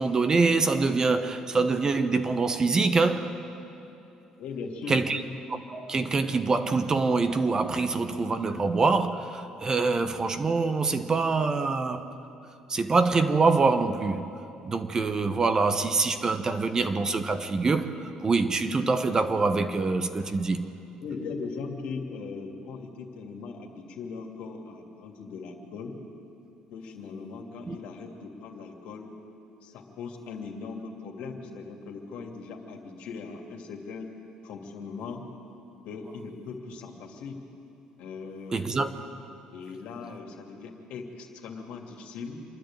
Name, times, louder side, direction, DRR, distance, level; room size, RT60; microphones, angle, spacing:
voice 1, 0.0-3.3 4.9-5.2 5.7-12.1 12.7-14.3 14.6-17.9 18.2-20.6 27.7-27.8 38.5-38.9, right 4 dB, 30° right, 1.1 m, -25 dB
voice 2, 4.4-5.1 21.0-26.0 26.7-29.1 29.6-34.1 34.4-35.3 35.8-37.4 38.0-38.8 39.5-42.4, left 4 dB, 75° left, 2.7 m, -39 dB
27.0 x 10.5 x 9.0 m
cardioid pair, 95°, 2 cm